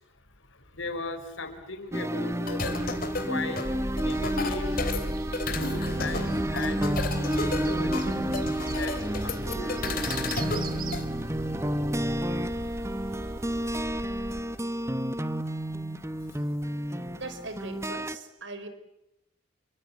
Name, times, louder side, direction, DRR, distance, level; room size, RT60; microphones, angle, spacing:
voice 1, 0.0-3.0 3.2-5.0 5.5-8.1 8.7-9.0 9.2-10.3 16.3-16.4, left 3 dB, 75° left, 8 dB, 4.5 m, -38 dB
sound 1, 1.9-18.2, right 1 dB, 15° right, 1.2 m, -31 dB
sound 2, 2.5-11.1, left 3 dB, 45° left, 3.2 m, -33 dB
sound 3, 3.6-14.4, right 1 dB, 45° right, 1.2 m, -38 dB
voice 2, 17.2-18.7, right 2 dB, 65° right, 10 dB, 5.2 m, -40 dB
29.5 x 24.0 x 8.3 m, 0.87 s
head